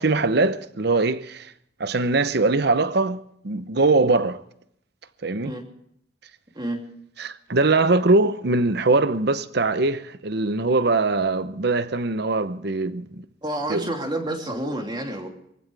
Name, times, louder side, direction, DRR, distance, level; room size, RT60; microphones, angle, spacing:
voice 1, 0.0-1.5 1.8-4.4 5.2-5.5 7.2-13.2 13.7-13.8, right 3 dB, 60° right, 0.8 m, -22 dB
voice 2, 13.4-15.3, right 1 dB, 25° right, 2.9 m, -29 dB
23.0 x 15.5 x 3.4 m
head